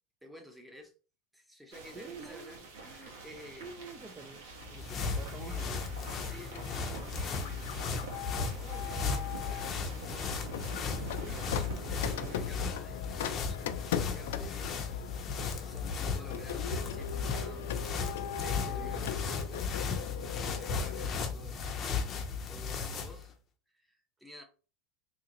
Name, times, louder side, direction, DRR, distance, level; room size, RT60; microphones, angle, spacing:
voice 1, 0.2-0.9 1.3-3.7 5.4-5.7 6.2-8.1 8.6-10.4 10.8-17.8 18.1-19.9 20.2-21.6 22.5-23.3 23.7-24.4, equal, 5° right, 0.8 m, -52 dB
sound 1, 1.7-12.5, right 4 dB, 85° right, 1.3 m, -46 dB
voice 2, 1.9-2.7 3.6-5.9 18.7-19.3, right 3 dB, 20° right, 0.4 m, -47 dB
sound 2, 4.5-23.3, left 5 dB, 30° left, 0.6 m, -36 dB
Printer, 6.6-9.8 10.5-21.1, left 9 dB, 85° left, 0.4 m, -40 dB
3.8 x 2.8 x 2.9 m
supercardioid pair, 140°, 0 cm